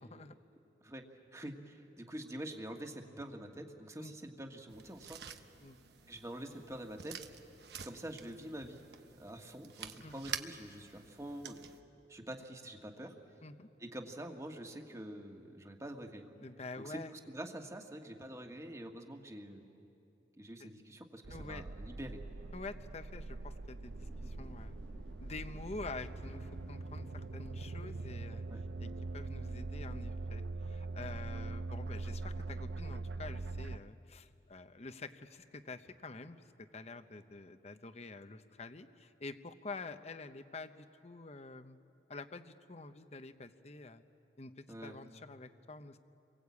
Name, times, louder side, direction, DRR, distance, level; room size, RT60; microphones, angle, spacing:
voice 1, 0.0-0.3 4.0-4.1 5.6-5.8 10.0-10.1 13.4-13.7 16.4-17.1 20.6-20.7 21.3-21.6 22.5-24.8 25.2-28.4 28.8-28.9 29.1-36.4 36.7-41.8 42.1-44.0 44.4-46.0, left 3 dB, 35° left, 10 dB, 0.9 m, -47 dB
voice 2, 1.3-5.4 6.1-7.2 7.8-8.9 9.2-11.6 12.1-13.1 13.8-16.3 16.8-17.0 17.3-19.7 20.4-22.5 28.5-28.6 44.7-45.0, right 1 dB, 15° right, 3 dB, 1.6 m, -46 dB
sound 1, 4.7-11.8, right 7 dB, 65° right, 1.0 m, -48 dB
sound 2, 21.2-33.8, right 3 dB, 85° right, 0.6 m, -42 dB
sound 3, 23.6-28.4, equal, 5° left, 1.4 m, -55 dB
29.5 x 22.5 x 8.5 m, 2.8 s
head